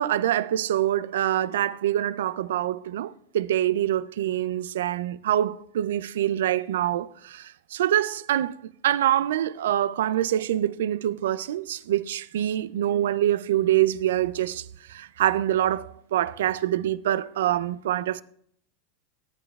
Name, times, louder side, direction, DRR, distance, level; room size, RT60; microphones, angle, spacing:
voice 1, 0.0-8.6 8.8-18.2, right 12 dB, 80° right, 0.4 m, -25 dB
18.5 x 8.8 x 2.3 m
hypercardioid pair, 105°, 0 cm